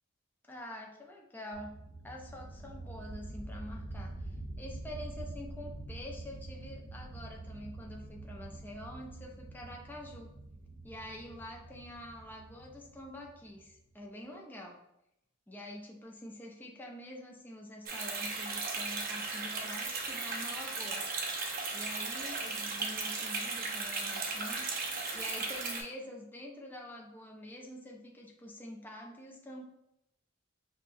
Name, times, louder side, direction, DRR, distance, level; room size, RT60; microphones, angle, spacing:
voice 1, 0.5-1.7 2.0-10.3 10.8-14.8 15.5-21.0 21.7-24.7 25.1-29.6, left 1 dB, 10° left, 0 dB, 0.5 m, -46 dB
sound 1, 1.5-13.9, right 2 dB, 50° left, 1.0 m, -46 dB
sound 2, 17.9-25.8, right 3 dB, 45° right, 0.6 m, -36 dB
5.4 x 2.2 x 2.5 m, 0.81 s
head